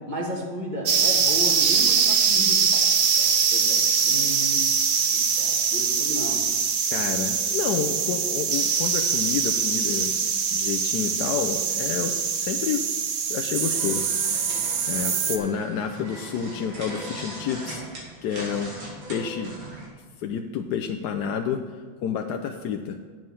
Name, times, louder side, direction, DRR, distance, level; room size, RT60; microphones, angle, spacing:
voice 1, 0.1-2.9 3.2-4.7 4.9-6.4, equal, 25° right, -2 dB, 1.8 m, -34 dB
sound 1, 0.9-15.4, right 6 dB, 60° right, 0.7 m, -23 dB
voice 2, 6.9-12.8 13.3-14.1 14.8-17.8 18.2-18.7 19.1-19.5 20.2-21.6 22.0-23.0, left 7 dB, 70° left, 5 dB, 1.1 m, -29 dB
sound 2, 13.7-19.9, right 1 dB, 85° right, 3.1 m, -39 dB
9.3 x 7.5 x 5.6 m, 1.5 s
omnidirectional pair, 2.0 m